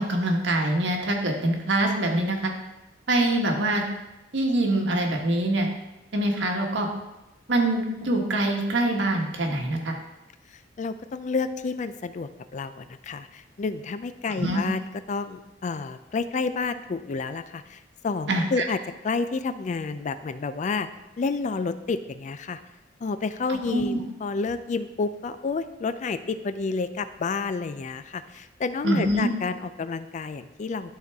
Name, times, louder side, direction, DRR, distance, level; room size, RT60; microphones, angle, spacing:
voice 1, 0.0-2.5 3.1-3.8 4.3-5.7 6.1-6.9 7.5-10.0 14.4-14.6 18.3-18.7 23.7-24.0 28.8-29.3, right 1 dB, 80° right, 2 dB, 1.2 m, -24 dB
voice 2, 10.5-18.8 19.0-20.9 21.2-22.6 23.0-31.0, left 4 dB, 40° left, 11 dB, 0.4 m, -30 dB
12.0 x 4.1 x 3.5 m, 0.99 s
head